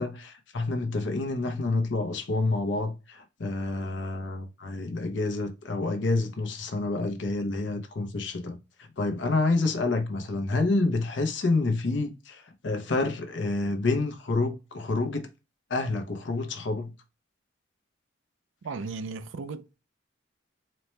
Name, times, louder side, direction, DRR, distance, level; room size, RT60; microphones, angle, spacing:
voice 1, 0.0-15.3 15.7-16.9, left 3 dB, 70° left, 0.7 m, -28 dB
voice 2, 18.6-19.8, right 4 dB, 75° right, 0.4 m, -36 dB
4.2 x 2.2 x 3.1 m
head